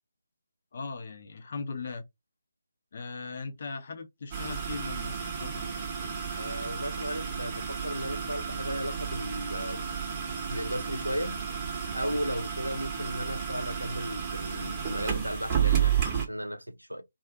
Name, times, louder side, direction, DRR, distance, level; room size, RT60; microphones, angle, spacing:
voice 1, 0.7-2.0 2.9-5.7, left 4 dB, 45° left, 0.5 m, -39 dB
sound 1, 4.3-16.2, right 8 dB, 20° right, 0.7 m, -32 dB
voice 2, 6.4-9.9 10.5-11.4 11.9-17.0, equal, 90° right, 0.4 m, -35 dB
2.4 x 2.4 x 2.2 m
figure-of-eight pair, 150°, 0 cm